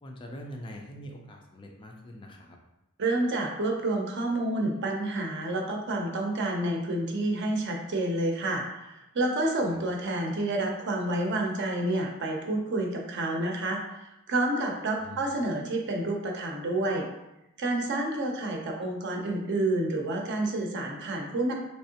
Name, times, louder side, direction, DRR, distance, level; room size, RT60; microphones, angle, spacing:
voice 1, 0.0-2.6 9.7-9.8 15.0-15.2, equal, 20° left, 1 dB, 0.3 m, -43 dB
voice 2, 3.0-13.8 14.3-17.1 17.6-21.5, right 2 dB, 50° right, 1 dB, 0.6 m, -29 dB
3.5 x 3.1 x 2.8 m, 0.92 s
head